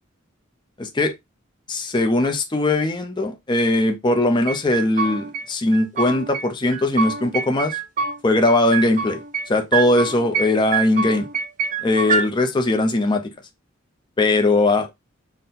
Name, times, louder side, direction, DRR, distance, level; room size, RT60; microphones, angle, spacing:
voice 1, 0.8-1.1 1.7-7.8 8.2-9.2 9.5-11.3 11.8-13.2 14.2-14.9, left 2 dB, 20° left, 0.5 m, -20 dB
sound 1, 4.5-5.4 5.7-6.4 6.7-8.2 8.5-9.5 9.7-10.5 10.7-12.2, right 5 dB, 40° right, 0.6 m, -25 dB
3.7 x 2.1 x 4.1 m
head